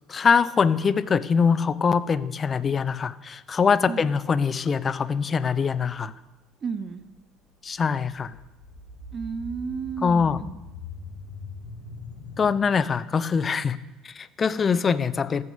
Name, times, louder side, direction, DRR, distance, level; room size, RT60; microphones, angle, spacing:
voice 1, 0.1-6.1 7.6-8.4 10.0-10.4 12.4-13.8 14.0-15.4, left 6 dB, 30° left, 16 dB, 0.9 m, -23 dB
voice 2, 6.6-7.0 9.1-10.6, right 5 dB, 35° right, 13 dB, 1.1 m, -32 dB
sound 1, 7.2-12.6, left 3 dB, 85° left, 5.1 m, -42 dB
14.5 x 12.5 x 6.9 m, 1.0 s
figure-of-eight pair, 60°, 0 cm